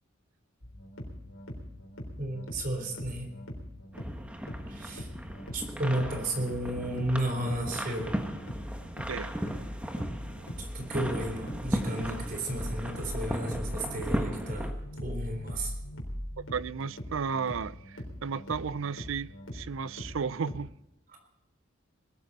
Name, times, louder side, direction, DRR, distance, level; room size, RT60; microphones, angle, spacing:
sound 1, 0.6-20.6, equal, 80° left, 3.9 m, -41 dB
voice 1, 2.2-3.3 4.7-5.1 5.5-8.3 10.6-14.7 15.0-15.7, right 1 dB, 45° right, 3.7 m, -33 dB
sound 2, 3.9-14.7, equal, 5° right, 1.3 m, -36 dB
voice 2, 16.4-20.7, right 6 dB, 75° right, 0.5 m, -34 dB
20.5 x 13.5 x 4.2 m
head